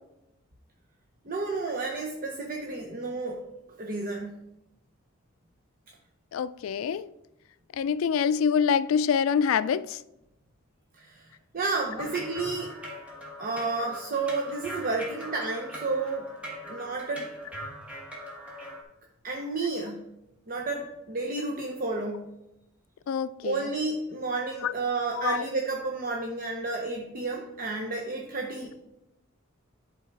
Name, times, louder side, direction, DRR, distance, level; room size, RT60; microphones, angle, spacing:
voice 1, 1.2-3.4 3.8-4.4 10.9-12.7 13.4-16.3 16.7-17.3 19.2-20.1 20.5-22.3 23.4-28.8, right 3 dB, 45° right, 0.8 m, -31 dB
voice 2, 6.3-7.1 7.7-10.0 23.1-23.7 24.6-24.7 25.1-25.4, left 7 dB, 80° left, 0.3 m, -26 dB
sound 1, 12.0-18.8, equal, 5° right, 1.4 m, -41 dB
11.0 x 3.9 x 4.6 m
head